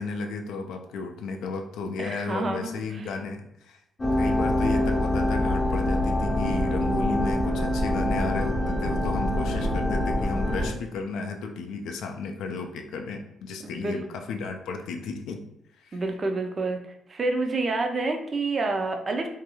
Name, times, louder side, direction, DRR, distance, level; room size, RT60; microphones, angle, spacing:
voice 1, 0.0-3.8 4.1-15.4 15.7-16.0, left 4 dB, 85° left, 4 dB, 0.3 m, -33 dB
voice 2, 2.0-3.1 13.6-14.0 15.9-16.8 17.1-19.3, right 3 dB, 40° right, 4 dB, 0.4 m, -28 dB
sound 1, 4.0-10.7, left 1 dB, 25° left, 0.5 m, -25 dB
2.5 x 2.3 x 2.9 m, 0.79 s
cardioid pair, 90°, 0 cm